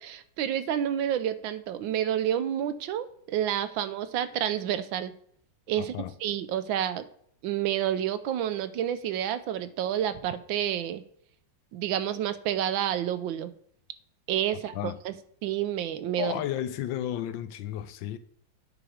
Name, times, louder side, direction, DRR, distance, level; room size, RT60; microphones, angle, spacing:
voice 1, 0.0-5.1 5.7-5.9 6.2-7.1 7.4-11.0 11.7-13.5 14.3-16.3, right 10 dB, 85° right, 1.4 m, -29 dB
voice 2, 5.8-6.1 14.7-15.0 16.2-18.2, left 11 dB, 85° left, 1.3 m, -33 dB
9.0 x 4.9 x 4.9 m
omnidirectional pair, 2.1 m